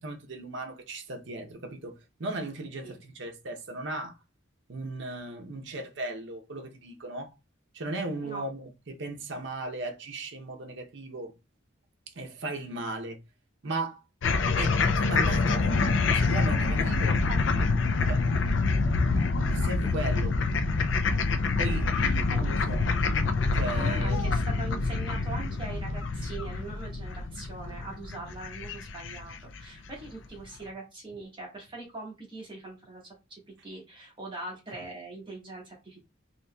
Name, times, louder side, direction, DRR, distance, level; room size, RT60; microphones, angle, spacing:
voice 1, 0.0-4.1 4.7-7.3 7.7-11.3 12.2-13.2 13.6-14.0 14.6-17.2 18.1-18.2 19.5-20.4 21.6-22.8 23.5-24.2, right 2 dB, 65° right, 0.7 m, -36 dB
sound 1, 14.2-29.6, left 4 dB, 65° left, 0.4 m, -26 dB
voice 2, 17.3-17.7 22.3-22.4 22.7-22.8 23.8-36.0, right 2 dB, 25° right, 1.4 m, -42 dB
4.0 x 2.9 x 2.2 m
head